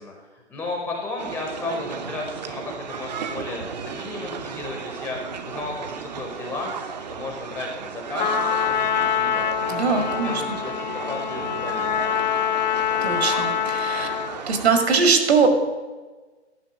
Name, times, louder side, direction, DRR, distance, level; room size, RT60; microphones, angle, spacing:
voice 1, 0.0-9.4 9.8-12.0, left 3 dB, 5° left, 0 dB, 0.7 m, -34 dB
sound 1, 1.2-14.7, right 7 dB, 35° right, 0.8 m, -34 dB
Trumpet, 8.2-14.4, left 9 dB, 40° left, 0.6 m, -25 dB
voice 2, 9.7-10.4 13.0-14.1 14.5-15.5, right 5 dB, 60° right, 5 dB, 2.0 m, -21 dB
10.5 x 5.5 x 7.2 m, 1.3 s
figure-of-eight pair, 140°, 35 cm